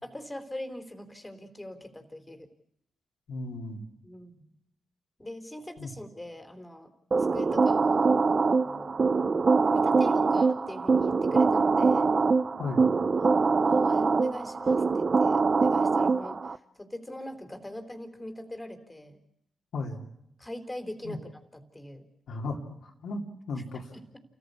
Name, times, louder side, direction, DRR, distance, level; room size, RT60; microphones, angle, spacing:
voice 1, 0.0-2.5 4.0-4.5 5.2-6.9 7.2-9.0 9.7-12.1 13.2-19.2 20.4-22.0 23.9-24.2, left 1 dB, 15° left, 7 dB, 4.0 m, -42 dB
voice 2, 3.3-3.8 5.8-5.9 12.6-12.9 19.7-20.1 21.0-21.2 22.3-23.2 23.5-23.9, left 3 dB, 70° left, 1 dB, 2.9 m, -35 dB
sound 1, 7.1-16.6, right 4 dB, 45° right, 0.8 m, -24 dB
28.5 x 14.5 x 8.5 m, 0.76 s
supercardioid pair, 45°, 0 cm